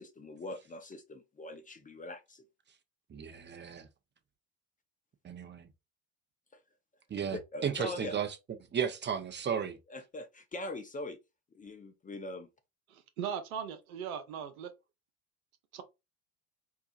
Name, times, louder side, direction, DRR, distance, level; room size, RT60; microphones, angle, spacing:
voice 1, 0.0-2.4 7.3-8.1 9.9-11.2 11.5-12.5, left 2 dB, 20° left, 0.6 m, -42 dB
voice 2, 3.1-3.9 5.2-5.7 7.1-8.3 8.7-9.8, right 7 dB, 25° right, 0.8 m, -34 dB
voice 3, 12.9-14.7 15.7-15.8, right 8 dB, 75° right, 0.8 m, -39 dB
4.5 x 2.3 x 2.6 m
hypercardioid pair, 65°, 43 cm